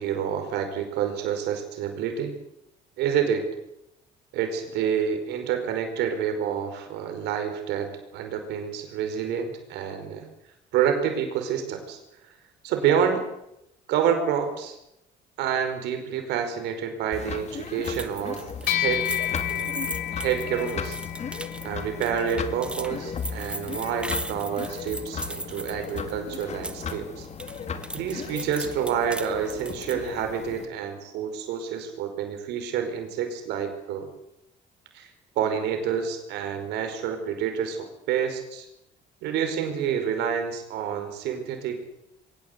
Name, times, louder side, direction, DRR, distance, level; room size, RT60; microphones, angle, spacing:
voice 1, 0.0-2.3 3.0-3.5 4.3-10.3 10.7-12.0 12.6-13.2 13.9-14.8 15.4-18.5 18.8-19.1 19.4-19.7 20.1-21.0 21.6-27.3 27.9-34.1 34.9-35.1 35.3-38.7 39.2-41.8, right 8 dB, 85° right, 6 dB, 5.1 m, -28 dB
sound 1, 17.1-30.7, left 6 dB, 40° left, 2.4 m, -37 dB
sound 2, 17.8-26.9 27.2-30.1, right 1 dB, 5° right, 1.4 m, -38 dB
sound 3, 18.7-28.3, left 12 dB, 80° left, 3.2 m, -34 dB
22.5 x 18.0 x 8.2 m, 0.84 s
cardioid pair, 110°, 17 cm